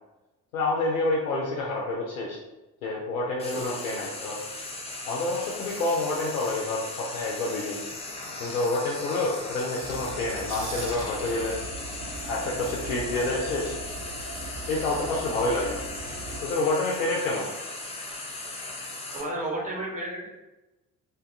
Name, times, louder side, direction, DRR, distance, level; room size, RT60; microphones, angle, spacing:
voice 1, 0.5-2.4 2.8-4.4 5.1-7.8 8.4-11.6 12.2-13.8 14.7-15.8 16.4-17.5, left 2 dB, 75° left, -3 dB, 0.5 m, -28 dB
Frying (food), 3.4-19.2, left 2 dB, 15° left, 0.4 m, -38 dB
voice 2, 3.5-3.8 19.1-20.3, right 1 dB, 15° right, -3 dB, 0.9 m, -32 dB
sound 1, 9.8-16.4, right 2 dB, 55° right, 0.9 m, -38 dB
2.7 x 2.2 x 2.3 m, 1.0 s
figure-of-eight pair, 45°, 43 cm